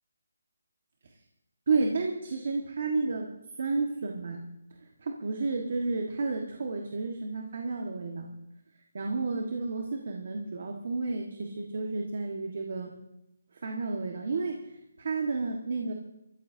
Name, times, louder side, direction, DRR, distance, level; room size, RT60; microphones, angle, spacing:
voice 1, 1.7-3.3 3.6-4.4 5.0-8.3 8.9-12.9 13.5-14.7 15.0-15.9, right 3 dB, 45° right, 2 dB, 1.6 m, -31 dB
28.0 x 14.0 x 2.8 m, 0.89 s
hypercardioid pair, 175°, 0 cm